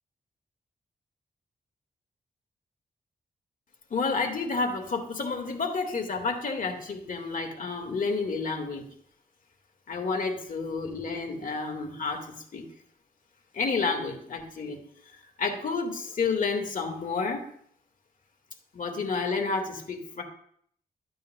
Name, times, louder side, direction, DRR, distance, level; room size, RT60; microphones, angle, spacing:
voice 1, 3.9-8.9 9.9-12.6 13.5-14.8 15.1-17.5 18.7-20.2, left 4 dB, 60° left, 3 dB, 1.9 m, -30 dB
12.5 x 9.1 x 2.3 m, 0.64 s
cardioid pair, 55°, 16 cm